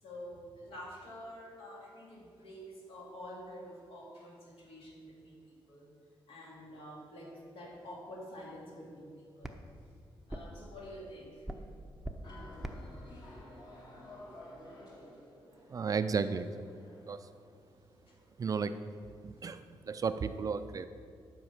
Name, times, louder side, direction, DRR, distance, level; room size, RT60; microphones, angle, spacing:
voice 1, 0.0-5.9 6.3-9.6 10.3-11.5 18.1-18.2 19.2-19.5, equal, 75° left, -3 dB, 2.6 m, -48 dB
sound 1, 9.4-14.8, right 1 dB, 5° right, 0.7 m, -47 dB
sound 2, 12.2-18.3, left 1 dB, 45° left, 2.1 m, -53 dB
voice 2, 15.7-16.5 17.1-17.2 18.4-18.7 19.2-20.9, right 5 dB, 40° right, 11 dB, 0.4 m, -33 dB
10.5 x 5.2 x 7.1 m, 2.4 s
wide cardioid pair, 135°, 10 cm